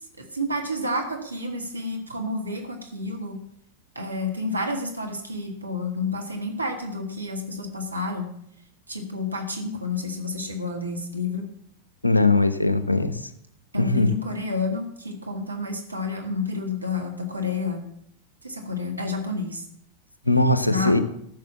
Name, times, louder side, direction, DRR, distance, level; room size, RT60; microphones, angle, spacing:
voice 1, 0.2-3.4 4.0-8.3 8.9-11.5 13.7-17.9 18.4-19.6 20.6-21.0, left 2 dB, 80° right, 3 dB, 1.8 m, -30 dB
voice 2, 12.0-13.2 13.7-14.1 20.3-21.0, left 2 dB, 85° left, 12 dB, 1.0 m, -20 dB
14.0 x 6.7 x 7.2 m, 0.71 s
figure-of-eight pair, 90°, 0 cm